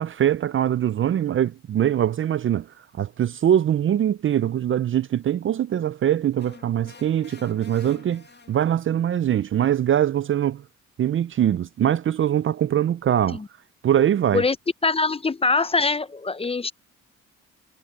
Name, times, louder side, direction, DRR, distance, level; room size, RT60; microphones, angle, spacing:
voice 1, 0.0-2.7 2.9-10.6 11.0-13.4 13.8-14.4, right 10 dB, 45° right, 0.5 m, -22 dB
sound 1, 6.4-9.0, left 5 dB, 35° left, 1.7 m, -48 dB
voice 2, 14.8-16.7, left 3 dB, 20° left, 0.7 m, -23 dB
cardioid pair, 90°, 30 cm